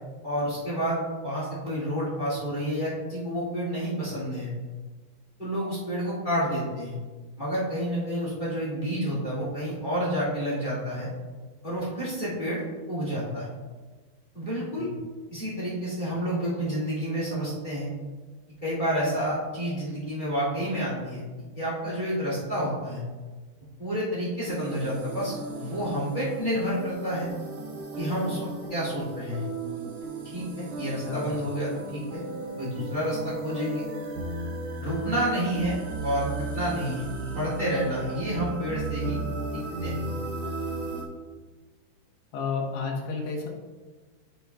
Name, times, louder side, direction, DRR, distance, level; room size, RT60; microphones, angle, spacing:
voice 1, 0.2-4.5 5.4-7.0 7.4-11.1 11.6-12.6 12.9-13.5 14.3-14.9 15.3-17.9 18.6-21.2 21.5-23.0 23.8-27.3 27.9-29.5 30.3-32.2 32.6-33.8 34.8-39.2 39.8-39.9, equal, 25° left, -8 dB, 1.0 m, -29 dB
sound 1, 24.4-41.0, right 2 dB, 65° right, 1.7 m, -35 dB
voice 2, 42.3-43.5, left 4 dB, 85° left, -2 dB, 3.3 m, -31 dB
12.5 x 5.3 x 2.3 m, 1.3 s
omnidirectional pair, 4.6 m